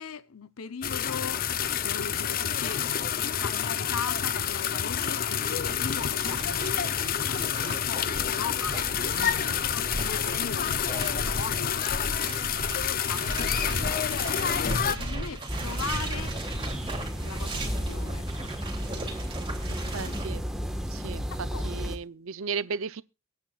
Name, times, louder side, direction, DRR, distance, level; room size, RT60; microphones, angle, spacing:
voice 1, 0.0-1.4 1.8-2.9 3.4-9.0 9.7-12.1 13.0-16.4 17.2-18.3 19.7-20.2 21.5-21.7, left 5 dB, 75° left, 0.8 m, -39 dB
sound 1, 0.8-15.0, left 8 dB, 45° left, 0.6 m, -28 dB
sound 2, 5.6-20.4, right 1 dB, 25° right, 2.8 m, -36 dB
voice 2, 9.2-9.7 19.9-20.4 20.9-21.3 21.6-23.0, right 5 dB, 70° right, 0.6 m, -35 dB
sound 3, 15.5-22.0, equal, ahead, 1.4 m, -33 dB
23.5 x 9.6 x 2.4 m
head